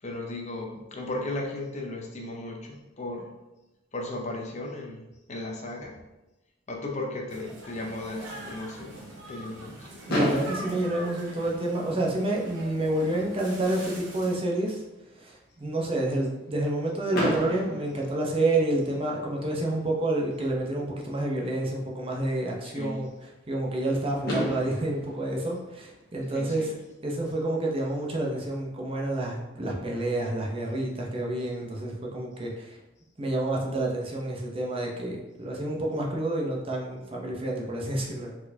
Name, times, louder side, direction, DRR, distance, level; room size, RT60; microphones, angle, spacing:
voice 1, 0.0-3.3 3.9-6.0 6.7-9.0 9.3-9.9 22.6-23.0 26.3-26.8, left 2 dB, 35° left, 1 dB, 0.6 m, -36 dB
sound 1, 7.3-14.4, right 1 dB, 75° right, 1.2 m, -43 dB
Fireworks, 10.1-12.1 12.9-13.0 13.2-13.4 13.7-13.8 17.1-19.0 20.7-20.8 23.8-23.9 24.3-26.6, equal, 55° left, 1.5 m, -32 dB
voice 2, 10.1-14.8 15.1-23.1 23.5-26.7 27.0-32.8 33.2-38.4, right 1 dB, 30° right, -1 dB, 0.7 m, -29 dB
4.4 x 4.3 x 2.7 m, 1.0 s
head